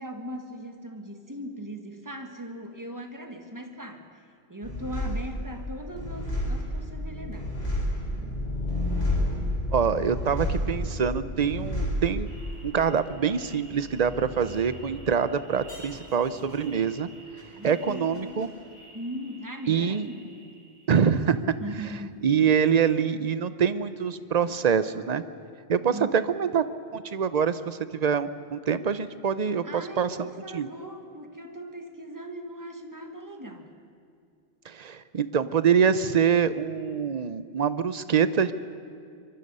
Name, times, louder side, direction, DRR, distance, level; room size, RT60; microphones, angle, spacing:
voice 1, 0.0-4.2 4.5-7.8 17.5-18.6 18.9-20.4 21.6-22.2 25.9-26.1 29.6-33.7, right 1 dB, 15° right, 4 dB, 1.7 m, -39 dB
sound 1, 4.6-19.5 19.8-20.6, left 1 dB, 65° left, 5.5 m, -32 dB
voice 2, 9.7-12.3 12.6-17.1 17.6-18.5 19.7-20.1 20.9-21.6 22.2-25.2 25.7-26.6 26.9-30.7 34.6-38.5, right 7 dB, 45° right, 13 dB, 0.7 m, -25 dB
24.0 x 23.0 x 5.5 m, 2.3 s
omnidirectional pair, 1.1 m